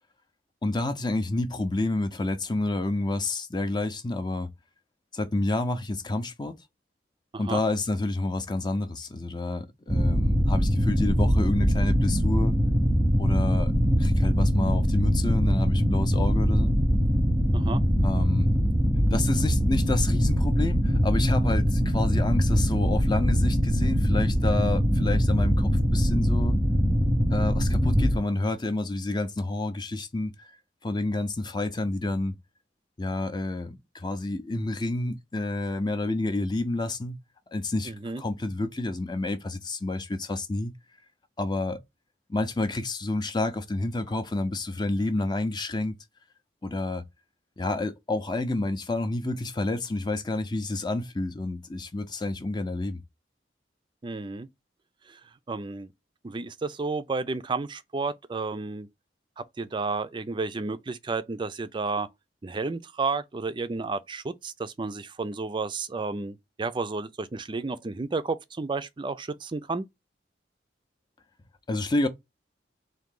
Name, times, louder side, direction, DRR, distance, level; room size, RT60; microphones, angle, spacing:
voice 1, 0.6-4.5 5.1-6.5 7.4-12.6 13.2-13.7 14.0-16.7 18.0-18.5 19.1-26.6 27.3-30.5 30.8-32.3 33.0-37.2 37.5-40.7 41.4-41.8 42.3-46.0 46.6-47.0 47.6-53.0 71.7-72.1, left 2 dB, 25° left, 0.5 m, -29 dB
sound 1, 9.9-28.2, equal, 5° right, 0.8 m, -22 dB
voice 2, 37.9-38.2 54.0-54.5 55.1-55.2 55.5-55.9 56.2-58.9 59.4-62.1 62.4-69.9, right 3 dB, 30° right, 0.4 m, -32 dB
3.8 x 2.7 x 3.7 m
head